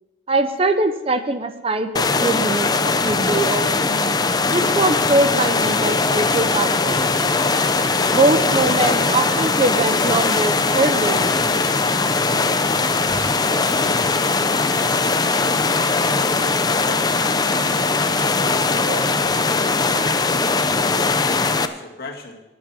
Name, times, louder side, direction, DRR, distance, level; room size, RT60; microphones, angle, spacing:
voice 1, 0.3-4.2 4.5-7.4 8.1-11.4, right 2 dB, 35° right, 9 dB, 0.8 m, -22 dB
sound 1, 2.0-21.7, left 3 dB, 20° left, 0.6 m, -20 dB
sound 2, 5.8-20.0, right 3 dB, 85° right, 2.3 m, -38 dB
voice 2, 13.7-14.5 15.7-22.4, left 2 dB, 55° left, 1 dB, 2.1 m, -37 dB
11.5 x 8.7 x 7.0 m, 1.1 s
head